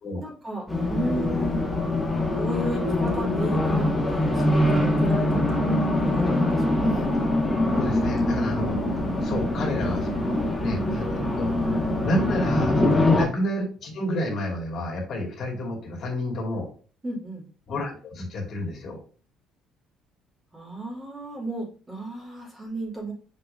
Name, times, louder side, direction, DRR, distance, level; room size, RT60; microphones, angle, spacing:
voice 1, 0.2-1.7 2.4-5.7 6.0-7.1 10.3-10.5 13.1-13.3 17.0-17.4 20.5-23.1, right 1 dB, 15° right, -5 dB, 2.9 m, -34 dB
Race car auto racing, 0.7-13.3, left 1 dB, 5° left, 1.1 m, -23 dB
voice 2, 7.7-8.8 9.2-16.7 17.7-19.0, left 1 dB, 45° left, 0 dB, 2.5 m, -30 dB
6.2 x 5.5 x 2.8 m, 0.40 s
cardioid pair, 140°, 0 cm